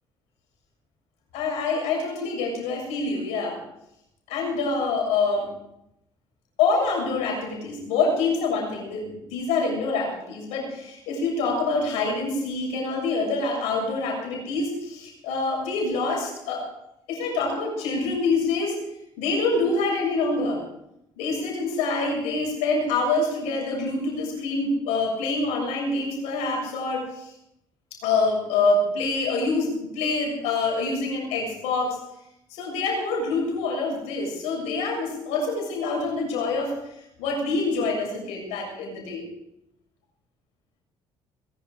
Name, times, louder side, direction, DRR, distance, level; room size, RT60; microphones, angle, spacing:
voice 1, 1.3-3.6 4.3-5.5 6.6-16.7 17.1-18.8 19.2-20.6 21.2-27.3 28.0-32.0 32.5-36.7 37.2-39.2, left 3 dB, 85° left, 0 dB, 7.2 m, -26 dB
21.5 x 12.0 x 4.9 m, 0.82 s
supercardioid pair, 75°, 11 cm